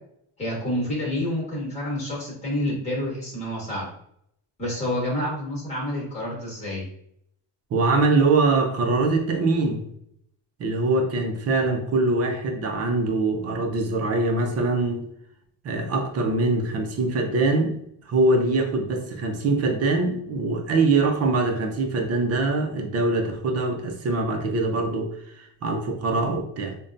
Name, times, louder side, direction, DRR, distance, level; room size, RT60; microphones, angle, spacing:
voice 1, 0.4-3.9 4.6-6.8, left 1 dB, 15° left, -3 dB, 1.3 m, -28 dB
voice 2, 7.7-9.8 10.6-15.0 15.6-17.8 18.1-26.7, right 3 dB, 35° right, 3 dB, 0.5 m, -23 dB
5.2 x 2.2 x 2.5 m, 0.72 s
cardioid pair, 175°, 45 cm